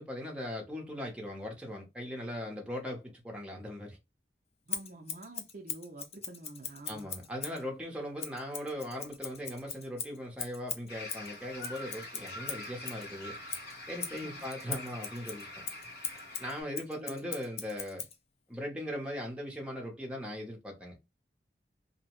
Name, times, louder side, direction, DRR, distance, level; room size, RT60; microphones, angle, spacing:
voice 1, 0.0-4.0 6.9-13.3 13.9-15.6 16.4-18.1 18.5-21.0, equal, 5° right, 0.7 m, -39 dB
Scissors, 4.7-7.6 8.2-13.1 13.5-18.2, left 6 dB, 35° left, 0.4 m, -40 dB
voice 2, 4.7-7.1 14.1-14.4 17.0-17.3, right 2 dB, 45° right, 0.5 m, -48 dB
sound 1, 10.9-16.6, left 1 dB, 70° left, 0.9 m, -45 dB
2.7 x 2.0 x 2.9 m
head